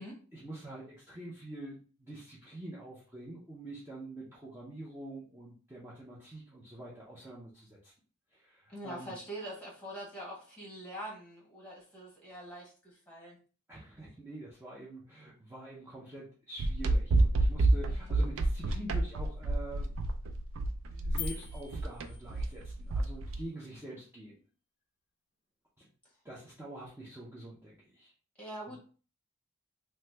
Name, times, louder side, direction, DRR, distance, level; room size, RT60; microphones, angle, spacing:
voice 1, 0.3-7.9 8.3-9.1 13.7-20.0 20.9-24.4 25.8-25.9 26.2-28.1, right 1 dB, 10° right, -6 dB, 0.5 m, -46 dB
voice 2, 8.7-13.4 17.9-18.1 28.4-28.8, right 1 dB, 5° left, -4 dB, 1.2 m, -44 dB
sound 1, 16.6-23.4, right 2 dB, 70° right, 0.4 m, -29 dB
sound 2, 21.2-22.7, left 10 dB, 60° left, 0.5 m, -44 dB
2.9 x 2.2 x 3.2 m, 0.40 s
head